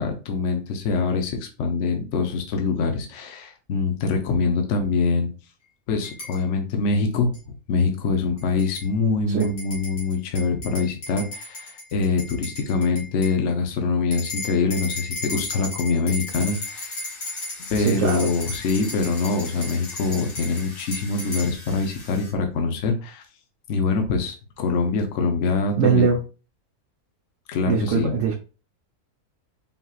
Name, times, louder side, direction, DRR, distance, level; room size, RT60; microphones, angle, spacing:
voice 1, 0.0-5.3 5.9-7.3 7.7-17.0 17.7-23.2 23.7-26.1 27.5-28.2, left 4 dB, 60° left, 3 dB, 1.0 m, -24 dB
sound 1, 6.0-6.4 7.3-7.4 8.4-8.9 9.4-13.4 14.1-21.5, left 2 dB, 85° left, 2.3 m, -35 dB
Domestic sounds home sounds, 16.3-22.3, left 2 dB, 25° left, 0.8 m, -43 dB
voice 2, 17.8-18.3 25.8-26.2 27.7-28.3, right 6 dB, 60° right, 1 dB, 1.0 m, -21 dB
5.6 x 3.0 x 2.4 m, 0.32 s
omnidirectional pair, 1.6 m